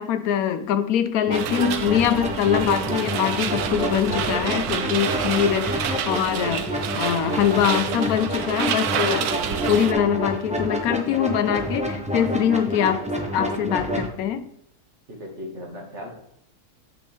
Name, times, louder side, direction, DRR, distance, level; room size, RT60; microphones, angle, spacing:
voice 1, 0.0-6.7 7.0-9.4 9.7-14.4, left 9 dB, 75° left, 9 dB, 1.1 m, -23 dB
sound 1, 1.3-14.1, equal, 5° right, 0.7 m, -28 dB
sound 2, 1.3-9.9, right 9 dB, 80° right, 1.1 m, -29 dB
voice 2, 15.1-16.1, left 1 dB, 45° right, -2 dB, 2.3 m, -37 dB
8.8 x 5.2 x 3.5 m, 0.74 s
omnidirectional pair, 1.6 m